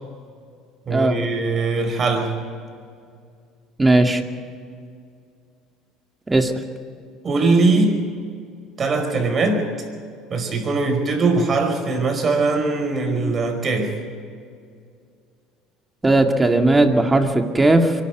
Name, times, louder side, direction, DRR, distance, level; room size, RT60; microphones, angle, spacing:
voice 1, 0.9-2.4 7.2-8.1 8.8-9.7 10.3-14.0, right 3 dB, 40° right, 4 dB, 5.1 m, -21 dB
voice 2, 3.8-4.2 6.3-6.5 16.0-17.9, right 2 dB, 15° right, 4 dB, 2.2 m, -17 dB
24.0 x 12.5 x 9.3 m, 2.3 s
supercardioid pair, 85°, 0 cm